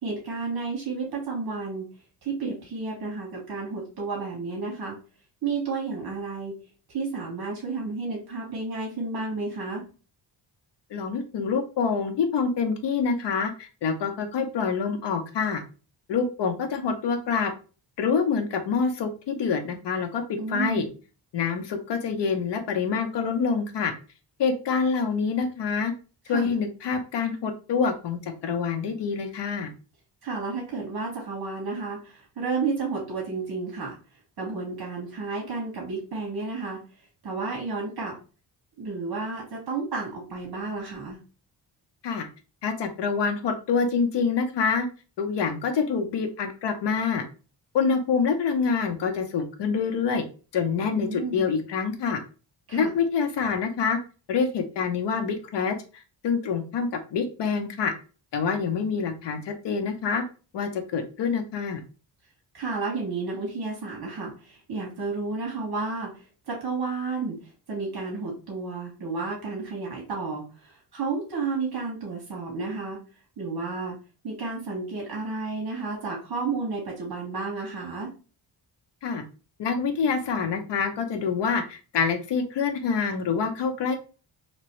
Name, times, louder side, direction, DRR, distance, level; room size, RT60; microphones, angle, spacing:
voice 1, 0.0-1.8 2.2-5.0 5.4-6.5 6.9-9.8 20.4-20.9 26.3-26.5 30.2-33.9 34.4-36.8 37.2-38.1 38.8-41.2 51.0-51.5 52.7-52.9 62.5-73.0 73.4-74.0 74.2-78.1, right 4 dB, 55° right, -3 dB, 1.4 m, -31 dB
voice 2, 10.9-15.6 16.1-17.5 18.0-20.9 21.3-23.9 24.4-25.9 26.3-29.7 42.0-42.3 42.6-44.9 45.2-47.3 47.7-50.2 50.5-52.2 52.7-54.0 54.3-57.9 58.3-60.2 60.5-61.8 79.0-79.2 79.6-84.0, left 5 dB, 70° left, 6 dB, 0.8 m, -26 dB
3.0 x 3.0 x 3.0 m, 0.35 s
cardioid pair, 125°, 43 cm